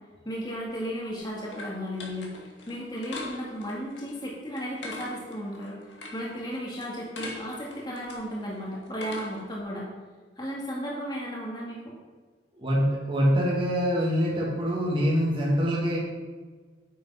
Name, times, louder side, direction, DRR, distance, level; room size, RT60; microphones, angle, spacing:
voice 1, 0.3-5.8 6.1-9.8 10.4-11.9, equal, 25° left, -4 dB, 2.1 m, -34 dB
sound 1, 0.7-9.6, left 2 dB, 75° left, 2.3 m, -43 dB
voice 2, 12.6-16.0, equal, 30° right, -4 dB, 2.5 m, -24 dB
9.1 x 8.6 x 5.6 m, 1.4 s
head